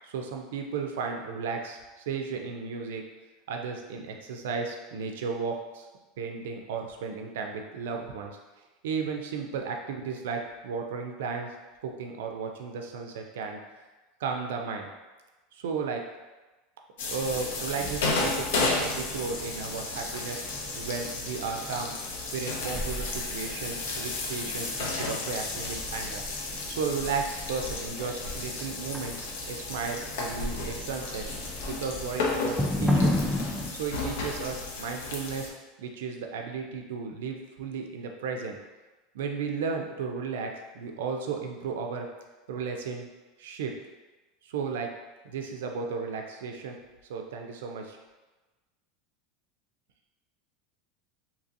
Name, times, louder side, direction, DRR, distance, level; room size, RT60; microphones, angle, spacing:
voice 1, 0.0-3.0 3.5-5.9 6.2-8.4 8.8-11.5 11.8-13.6 14.2-14.9 15.5-16.0 17.1-20.4 20.7-21.9 22.3-26.2 26.7-29.2 29.5-31.3 31.7-33.2 33.7-35.5 35.8-38.6 39.1-42.1 42.5-43.1 43.4-43.7 44.4-44.9 45.2-46.8 47.1-48.0, right 5 dB, 80° right, 3 dB, 0.4 m, -34 dB
sound 1, 17.0-35.5, left 3 dB, 80° left, 0.5 m, -33 dB
sound 2, 17.2-33.7, left 1 dB, ahead, 0.4 m, -35 dB
2.8 x 2.7 x 2.5 m, 1.2 s
supercardioid pair, 110°, 0 cm